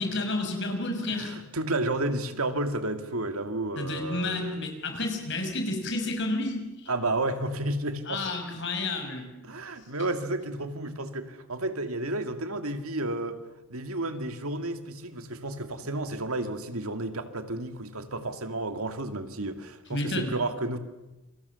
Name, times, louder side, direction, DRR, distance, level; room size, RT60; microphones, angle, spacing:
voice 1, 0.0-1.3 3.8-6.9 8.1-9.3 19.9-20.3, left 2 dB, 55° left, 5 dB, 5.6 m, -31 dB
voice 2, 1.1-4.7 6.9-8.2 9.4-13.4 13.7-20.8, right 2 dB, 75° right, 8 dB, 2.3 m, -32 dB
28.5 x 25.0 x 7.1 m, 0.99 s
head